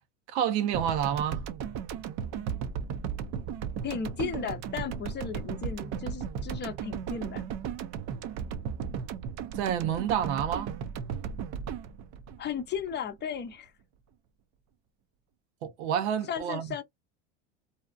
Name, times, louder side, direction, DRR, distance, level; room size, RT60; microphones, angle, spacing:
voice 1, 0.3-1.4 9.5-10.7 15.6-16.7, right 9 dB, 80° right, 0.8 m, -29 dB
sound 1, 0.7-13.2, right 7 dB, 50° right, 0.6 m, -36 dB
voice 2, 3.8-7.4 12.4-13.7 16.3-16.8, left 7 dB, 30° left, 0.6 m, -35 dB
2.7 x 2.3 x 2.3 m
supercardioid pair, 95°, 33 cm